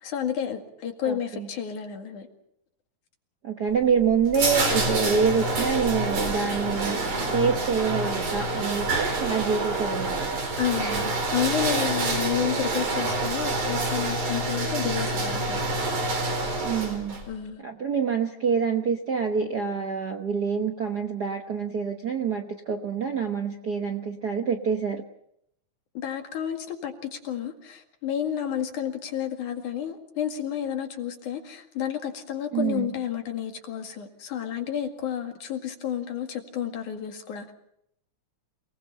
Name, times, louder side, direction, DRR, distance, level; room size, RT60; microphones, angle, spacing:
voice 1, 0.0-2.3 10.6-15.6 17.3-17.6 26.0-37.5, left 9 dB, 80° left, 3.6 m, -31 dB
voice 2, 1.0-1.5 3.4-7.0 7.3-10.4 16.6-17.2 17.6-25.0 32.5-32.9, right 6 dB, 60° right, 1.1 m, -26 dB
sound 1, 3.7-17.2, right 2 dB, 75° right, 5.6 m, -27 dB
28.0 x 19.0 x 5.6 m
omnidirectional pair, 3.5 m